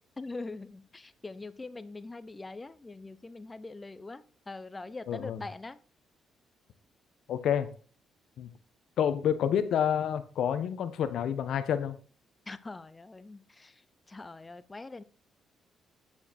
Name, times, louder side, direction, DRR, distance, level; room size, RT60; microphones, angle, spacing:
voice 1, 0.2-5.8 12.5-13.7 14.1-15.0, left 3 dB, 20° left, 14 dB, 0.8 m, -43 dB
voice 2, 5.1-5.4 7.3-7.7 8.4-8.5 9.0-12.0, left 9 dB, 70° left, 10 dB, 1.2 m, -28 dB
9.1 x 7.1 x 4.5 m, 0.40 s
cardioid pair, 90°, 0 cm